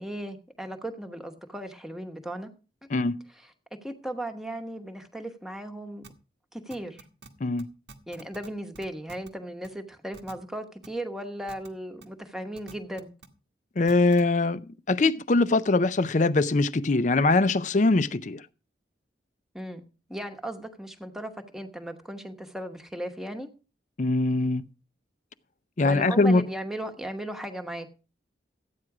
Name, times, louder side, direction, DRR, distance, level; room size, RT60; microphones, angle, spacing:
voice 1, 0.0-2.5 3.3-3.5 3.8-6.0 6.5-7.0 8.1-13.1 19.5-19.8 20.1-23.5 25.8-27.9, right 1 dB, ahead, 1.1 m, -36 dB
voice 2, 2.9-3.2 7.4-7.7 13.8-18.4 24.0-24.7 25.8-26.4, left 3 dB, 40° left, 0.5 m, -22 dB
sound 1, 6.0-6.1 6.7-7.3 7.6-7.7 7.9-8.5 8.7-9.3 9.6-9.7 10.1-10.3 10.8-10.9 11.5-11.7 12.0-12.1 12.6-13.3 13.9-14.2, right 4 dB, 80° right, 1.5 m, -47 dB
13.5 x 9.1 x 4.8 m
head